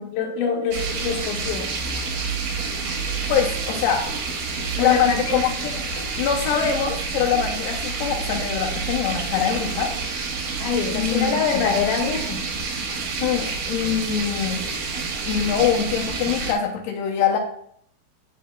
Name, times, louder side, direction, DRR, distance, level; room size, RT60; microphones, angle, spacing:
voice 1, 0.0-1.7 4.8-5.4 10.6-12.4, left 5 dB, 65° left, -1 dB, 2.3 m, -24 dB
sound 1, 0.7-16.5, right 4 dB, 70° right, 2.1 m, -28 dB
voice 2, 3.3-4.1 4.8-5.7 6.2-9.9 10.9-11.4 13.2-14.6 15.3-17.4, left 8 dB, 85° left, 1 dB, 2.6 m, -23 dB
7.7 x 6.4 x 2.2 m, 0.66 s
omnidirectional pair, 4.8 m